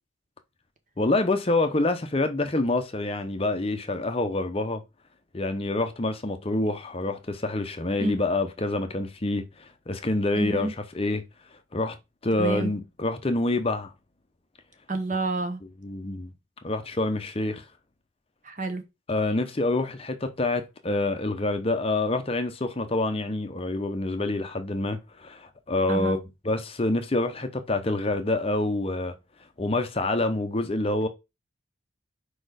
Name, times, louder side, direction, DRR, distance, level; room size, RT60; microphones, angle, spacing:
voice 1, 1.0-4.8 5.3-11.2 11.7-12.0 12.2-13.9 15.8-16.3 16.6-17.6 19.1-29.1 29.6-31.1, left 2 dB, 30° left, 0.7 m, -27 dB
voice 2, 10.4-10.7 12.4-12.7 14.9-15.6 18.4-18.8 25.9-26.2, right 2 dB, 40° right, 1.1 m, -28 dB
5.0 x 4.3 x 4.9 m
head